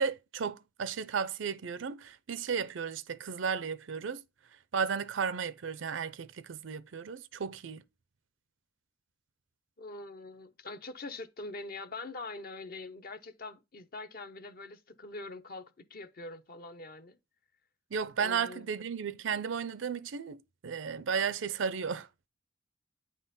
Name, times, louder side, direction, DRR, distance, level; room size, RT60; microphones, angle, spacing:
voice 1, 0.0-4.2 4.7-7.8 17.9-22.1, right 6 dB, 70° right, 0.5 m, -34 dB
voice 2, 9.8-17.2 18.2-18.7, left 3 dB, 50° left, 0.7 m, -44 dB
9.3 x 3.8 x 4.1 m
head